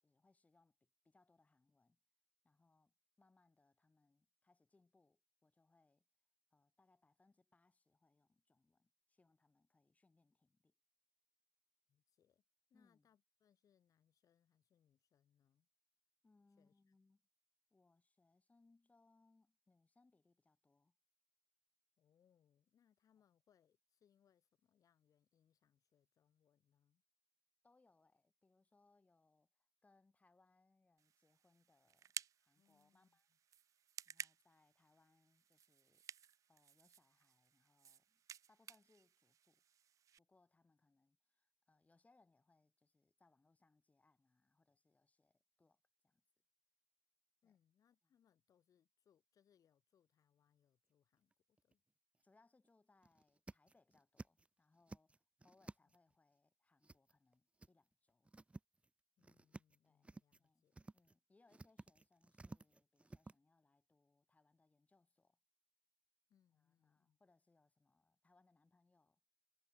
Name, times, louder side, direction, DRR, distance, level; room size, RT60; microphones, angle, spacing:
voice 1, 0.0-2.0 2.4-6.1 6.5-10.7 12.7-13.1 16.2-17.2 17.7-21.0 27.6-33.3 34.1-36.0 36.5-38.2 38.5-39.6 40.2-46.2 47.4-47.6 52.2-58.3 59.8-60.1 60.4-60.7 60.9-65.4 66.5-69.2, left 3 dB, 20° left, 7.2 m, -76 dB
voice 2, 11.9-12.4 12.7-15.7 16.5-17.0 22.0-27.0 32.5-33.4 47.4-51.8 55.8-55.9 59.2-60.9 66.3-67.2, left 9 dB, 60° left, 5.1 m, -78 dB
sound 1, 31.0-40.2, right 9 dB, 55° right, 0.4 m, -55 dB
sound 2, 51.3-51.7 52.2-52.3 52.6-52.7 53.0-54.5 54.8-56.1 56.8-57.3 57.6-57.7 58.1-58.9 59.2-59.8 60.0-60.5 60.7-61.1 61.5-63.4, right 2 dB, 20° right, 1.7 m, -55 dB
cardioid pair, 100°, 7 cm